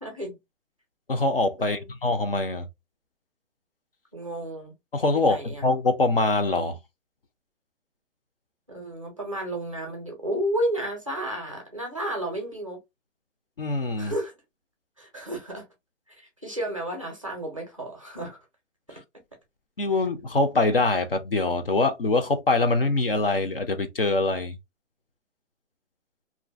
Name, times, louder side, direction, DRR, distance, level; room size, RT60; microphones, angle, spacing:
voice 1, 0.0-0.4 1.6-1.8 4.1-4.7 5.1-5.6 8.7-12.8 14.0-14.3 15.0-15.7 16.2-18.4, right 1 dB, 25° right, 0.5 m, -32 dB
voice 2, 1.1-2.7 4.9-6.8 13.6-14.1 18.9-19.0 19.8-24.5, left 2 dB, 50° left, 0.4 m, -24 dB
2.5 x 2.4 x 2.3 m
hypercardioid pair, 165°, 38 cm